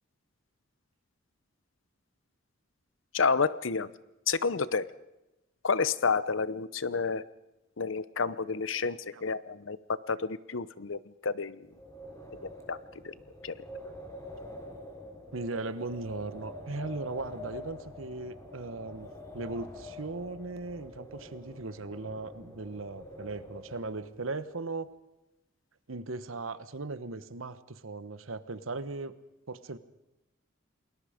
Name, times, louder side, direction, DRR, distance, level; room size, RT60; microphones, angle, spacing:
voice 1, 3.1-3.9 4.3-4.9 5.6-7.2 7.8-11.7 12.7-12.8 13.0-13.1 13.4-13.5, left 5 dB, 70° left, 17 dB, 0.8 m, -30 dB
voice 2, 8.9-9.2 13.8-13.9 15.3-24.9 25.9-29.1 29.5-29.8, right 3 dB, 85° right, 14 dB, 1.1 m, -38 dB
Wind, 11.6-24.2, left 1 dB, 15° left, 3.9 m, -46 dB
28.5 x 20.5 x 5.1 m, 0.96 s
head